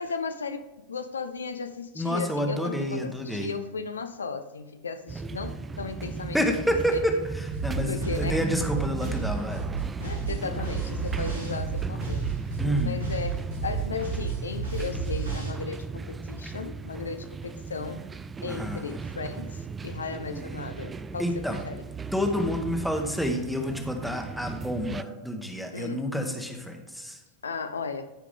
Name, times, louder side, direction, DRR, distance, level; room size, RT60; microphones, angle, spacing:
voice 1, 0.0-6.4 6.9-7.0 7.8-8.5 10.0-12.3 12.8-18.0 18.4-21.8 25.7-26.1 27.4-28.1, left 5 dB, 70° left, 8 dB, 0.6 m, -35 dB
voice 2, 2.0-3.5 6.3-9.6 12.6-13.0 18.5-18.8 21.2-21.6 22.1-27.2, equal, ahead, 5 dB, 1.2 m, -29 dB
sound 1, 5.1-25.0, right 5 dB, 15° right, 0.3 m, -36 dB
sound 2, 7.5-15.5, right 5 dB, 80° right, 2.6 m, -32 dB
14.5 x 4.9 x 3.5 m, 1.1 s
figure-of-eight pair, 90°, 0 cm